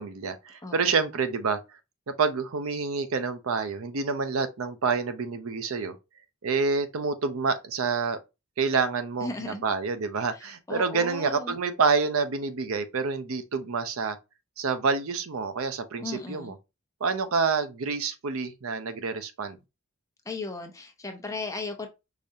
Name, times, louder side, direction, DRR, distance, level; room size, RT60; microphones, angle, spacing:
voice 1, 0.0-1.6 2.1-5.9 6.4-8.2 8.6-14.2 14.6-16.5 17.0-19.6, right 4 dB, 65° right, 0.5 m, -28 dB
voice 2, 0.6-1.1 9.2-9.6 10.3-11.6 16.0-16.5 20.2-21.9, left 3 dB, 15° left, 0.7 m, -36 dB
4.9 x 2.6 x 2.7 m
head